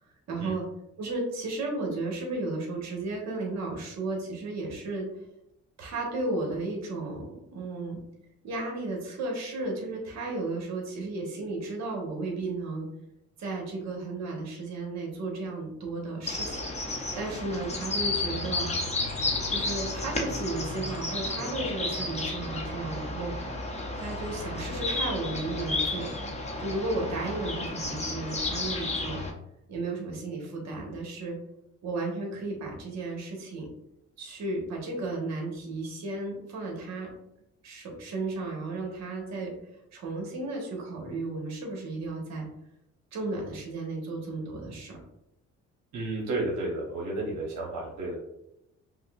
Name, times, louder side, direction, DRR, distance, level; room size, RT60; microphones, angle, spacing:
voice 1, 0.3-0.6 1.0-5.1 5.8-8.0 8.4-12.9 13.4-16.7 17.1-18.7 19.5-23.3 23.9-26.1 26.6-29.2 29.7-31.4 31.8-33.7 34.2-37.1 37.6-39.5 39.9-42.5 43.1-45.0, right 2 dB, 60° right, 0 dB, 1.1 m, -34 dB
sound 1, 16.3-29.3, left 2 dB, 20° left, 0.6 m, -32 dB
voice 2, 45.9-48.2, right 2 dB, 85° right, -3 dB, 0.9 m, -32 dB
5.1 x 2.0 x 2.3 m, 0.83 s
cardioid pair, 90°, 30 cm